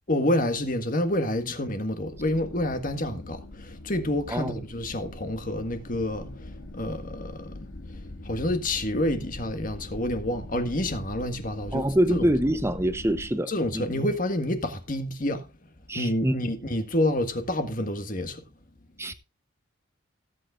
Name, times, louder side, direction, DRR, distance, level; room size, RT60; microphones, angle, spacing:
voice 1, 0.1-12.3 13.5-15.5 15.9-18.4 19.0-19.1, left 1 dB, 40° left, 1.7 m, -28 dB
sound 1, 2.1-13.3, left 1 dB, 80° left, 2.4 m, -42 dB
voice 2, 4.3-4.6 11.7-13.8 15.9-16.3 19.0-19.1, right 1 dB, 15° right, 0.8 m, -25 dB
17.5 x 8.5 x 2.5 m
head